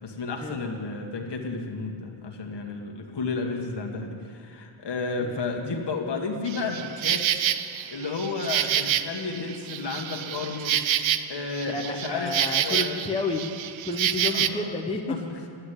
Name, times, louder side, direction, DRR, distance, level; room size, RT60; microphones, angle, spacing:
voice 1, 0.0-7.2 7.9-11.0 11.3-12.3 12.6-13.2 14.3-14.7 15.1-15.5, left 4 dB, 55° left, 2 dB, 1.6 m, -32 dB
Insect, 6.5-14.5, right 10 dB, 70° right, 0.6 m, -27 dB
voice 2, 11.7-13.5 13.8-15.0, left 3 dB, 10° left, 2 dB, 0.7 m, -30 dB
11.5 x 8.6 x 9.8 m, 2.4 s
wide cardioid pair, 155°, 49 cm